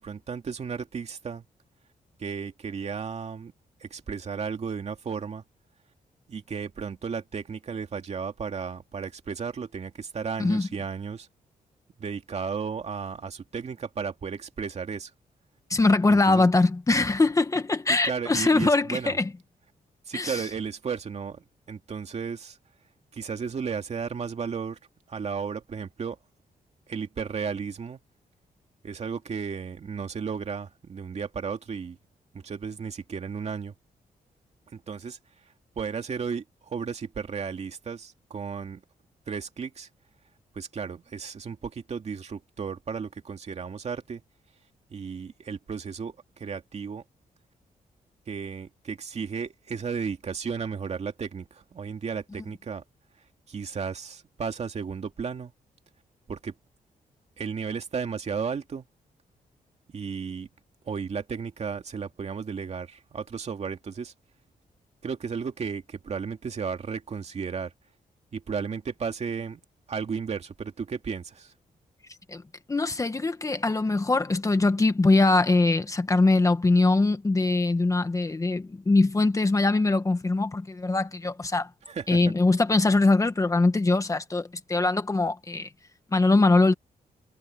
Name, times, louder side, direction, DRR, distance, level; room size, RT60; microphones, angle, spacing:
voice 1, 0.0-1.4 2.2-3.5 3.8-5.4 6.3-11.3 12.0-15.1 16.1-16.5 17.9-19.2 20.1-22.6 23.1-24.8 25.1-26.2 26.9-28.0 28.8-32.0 32.3-33.7 34.7-35.2 35.8-38.8 39.3-39.9 40.5-44.2 44.9-47.0 48.3-52.8 53.5-55.5 56.3-56.5 57.4-58.9 59.9-60.5 60.9-64.1 65.0-67.7 68.3-69.6 69.9-71.5 81.9-82.2, right 6 dB, 45° right, 2.4 m, -34 dB
voice 2, 15.7-19.3 20.1-20.4 72.3-72.4 72.7-81.7 82.1-85.7 86.1-86.7, left 3 dB, 20° left, 1.3 m, -22 dB
wide cardioid pair, 135°, 15 cm